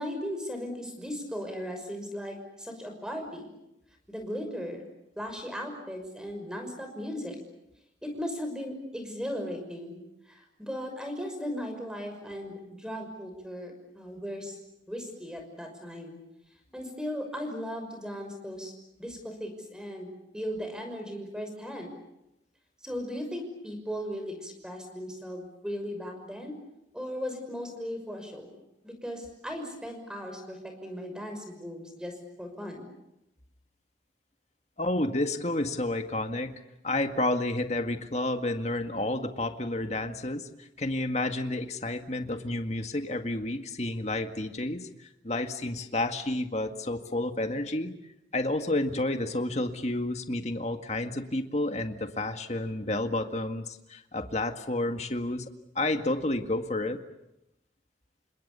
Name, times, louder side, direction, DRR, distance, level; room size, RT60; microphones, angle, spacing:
voice 1, 0.0-3.5 4.1-4.8 5.2-7.4 8.0-10.0 10.3-14.6 14.9-16.2 16.7-18.7 19.0-20.1 20.3-21.9 22.8-26.6 26.9-28.6 28.8-32.9, equal, 5° right, 5 dB, 6.0 m, -37 dB
voice 2, 34.8-36.5 36.8-47.9 48.3-55.5 55.8-57.0, left 2 dB, 40° left, 6 dB, 1.9 m, -30 dB
29.5 x 26.5 x 6.9 m, 0.86 s
head